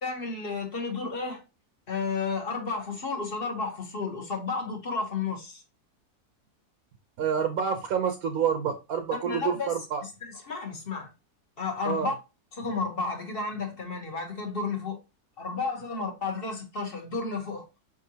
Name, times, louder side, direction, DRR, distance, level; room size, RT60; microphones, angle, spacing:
voice 1, 0.0-1.4 1.9-5.6 9.2-9.7 10.0-11.1 11.6-12.1 12.5-15.0 15.4-17.6, left 4 dB, 40° left, 1.1 m, -32 dB
voice 2, 7.2-10.0 11.9-12.1, right 7 dB, 70° right, 1.0 m, -28 dB
5.2 x 3.6 x 2.7 m
omnidirectional pair, 1.6 m